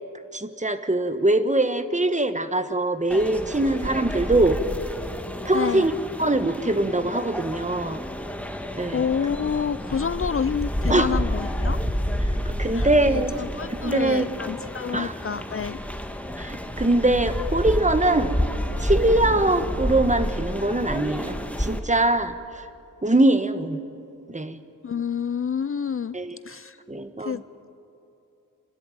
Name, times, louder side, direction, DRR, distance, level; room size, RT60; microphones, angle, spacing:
voice 1, 0.3-4.6 5.4-5.9 6.2-8.0 8.8-9.0 10.9-11.1 12.6-13.3 13.7-14.3 14.9-15.1 16.4-18.3 18.8-22.6 23.0-23.8 24.3-24.6 26.1-26.3 26.9-27.4, right 2 dB, 20° right, 10 dB, 1.3 m, -22 dB
sound 1, 3.1-21.8, equal, 5° left, 1.5 m, -29 dB
voice 2, 5.5-5.9 8.9-11.8 12.7-15.8 24.8-26.2 26.5-26.8 27.2-27.4, left 7 dB, 40° left, 15 dB, 0.4 m, -28 dB
25.5 x 12.5 x 9.3 m, 2.7 s
cardioid pair, 55°, 33 cm